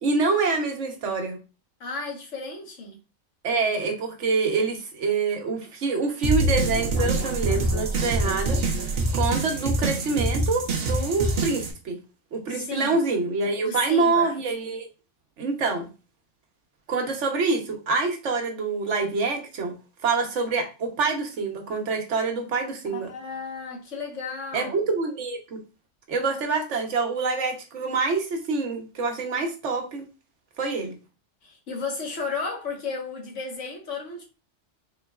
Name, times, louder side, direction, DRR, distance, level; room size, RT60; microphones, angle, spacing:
voice 1, 0.0-1.4 3.4-12.0 12.3-14.9 15.4-15.9 16.9-19.7 20.0-23.1 24.5-25.6 26.1-30.0 30.6-30.9, right 4 dB, 80° right, 1.2 m, -26 dB
voice 2, 1.8-3.0 12.5-13.0 13.6-14.3 22.9-24.8 31.4-34.2, left 4 dB, 85° left, 1.5 m, -33 dB
sound 1, 6.2-11.7, right 2 dB, 60° right, 0.9 m, -25 dB
3.8 x 3.8 x 2.3 m
omnidirectional pair, 1.2 m